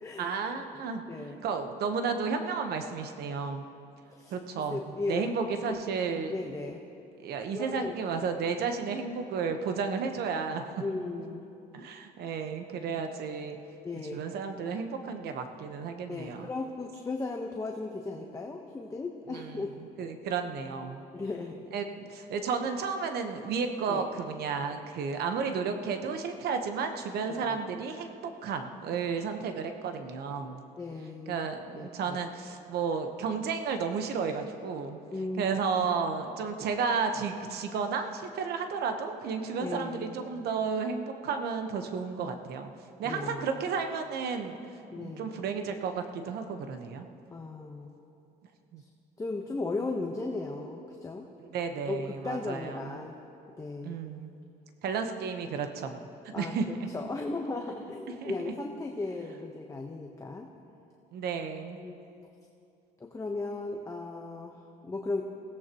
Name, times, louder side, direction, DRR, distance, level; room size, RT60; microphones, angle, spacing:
voice 1, 0.2-1.0 1.4-3.6 4.3-4.8 5.1-6.3 7.2-10.7 11.7-13.6 14.1-16.5 19.3-19.7 20.0-21.0 21.7-30.6 31.3-35.0 35.4-42.7 43.0-44.6 44.9-47.1 48.7-48.8 51.4-53.0 53.8-54.3 54.8-56.0 56.2-56.9 58.2-58.3 61.1-61.8, right 5 dB, 70° right, 6 dB, 1.1 m, -32 dB
voice 2, 1.1-1.4 4.1-5.3 5.7-5.8 6.3-6.8 7.5-7.9 10.8-11.4 13.8-14.2 16.1-19.7 21.1-21.6 23.9-24.0 27.3-27.6 30.8-31.5 31.8-32.2 35.1-35.9 39.6-40.2 43.0-43.6 44.9-45.3 47.3-47.9 49.2-51.3 51.9-53.2 53.6-54.0 56.3-56.5 56.9-60.5 61.8-62.0 63.0-65.2, left 3 dB, 20° left, 1 dB, 1.1 m, -36 dB
21.5 x 17.0 x 3.0 m, 2.6 s
cardioid pair, 110°, 17 cm